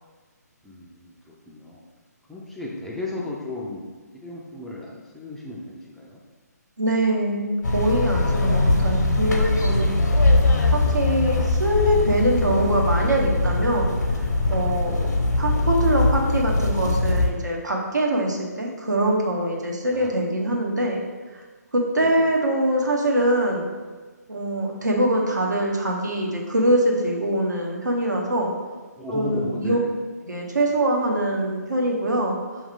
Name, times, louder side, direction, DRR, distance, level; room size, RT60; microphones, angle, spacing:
voice 1, 0.6-1.8 2.3-6.2 11.6-12.0 14.8-15.2 19.9-20.1 20.4-20.6 22.0-22.3 29.0-30.0, left 1 dB, ahead, -5 dB, 0.3 m, -35 dB
voice 2, 6.8-9.9 10.7-14.2 14.5-15.0 15.4-21.0 21.3-21.4 21.7-23.7 24.3-28.5 29.1-29.8 30.3-32.6, right 1 dB, 80° right, -1 dB, 0.9 m, -23 dB
sound 1, 7.6-17.3, left 2 dB, 70° left, 0.7 m, -21 dB
4.5 x 3.1 x 3.6 m, 1.4 s
figure-of-eight pair, 145°, 9 cm